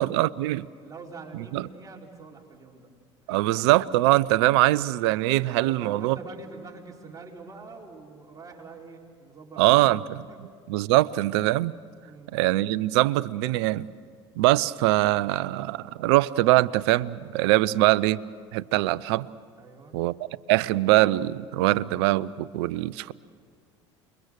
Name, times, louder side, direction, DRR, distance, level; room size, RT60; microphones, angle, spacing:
voice 1, 0.0-0.7 1.3-1.7 3.3-6.2 9.6-10.0 10.7-11.7 12.3-13.9 14.4-18.2 18.5-19.3 19.9-20.2 20.5-23.1, right 17 dB, 65° right, 20 dB, 0.6 m, -22 dB
voice 2, 0.8-2.9 3.3-3.4 5.6-9.8 10.3-10.4 12.0-12.4 19.6-19.9, right 4 dB, 25° right, -2 dB, 4.7 m, -44 dB
28.0 x 22.5 x 6.7 m, 2.1 s
hypercardioid pair, 70°, 15 cm